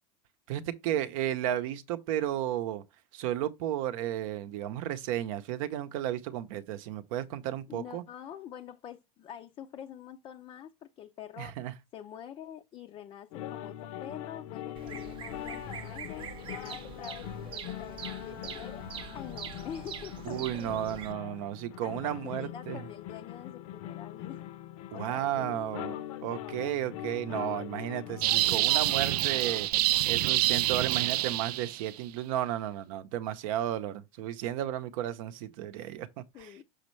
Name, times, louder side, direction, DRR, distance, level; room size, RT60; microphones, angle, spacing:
voice 1, 0.5-2.8 3.1-8.0 11.4-11.7 20.3-22.8 24.9-29.7 30.1-36.5, right 11 dB, 60° right, 0.8 m, -33 dB
voice 2, 7.7-11.5 11.9-18.8 19.1-21.0 21.8-24.5 24.9-25.3 36.3-36.6, left 9 dB, 25° left, 0.5 m, -46 dB
sound 1, 13.3-29.7, left 12 dB, 60° left, 0.7 m, -42 dB
Bird vocalization bird call bird song, 14.8-21.1, right 7 dB, 25° right, 0.6 m, -44 dB
sound 2, 28.2-31.9, right 15 dB, 80° right, 0.4 m, -27 dB
6.4 x 5.2 x 3.1 m
supercardioid pair, 160°, 20 cm